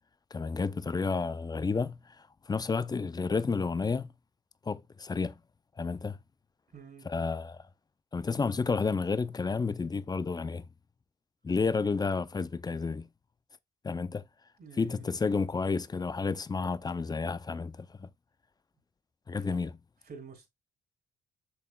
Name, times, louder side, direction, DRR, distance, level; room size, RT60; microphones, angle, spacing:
voice 1, 0.3-2.0 2.5-4.1 4.7-5.4 5.8-6.2 7.0-7.6 8.1-10.7 11.4-13.1 13.8-14.2 14.8-18.1 19.3-19.7, left 4 dB, 20° left, 0.4 m, -31 dB
voice 2, 6.7-7.1 14.6-15.1 19.5-19.7 20.0-20.5, right 5 dB, 50° right, 3.5 m, -49 dB
7.1 x 6.5 x 2.2 m
cardioid pair, 90°, 20 cm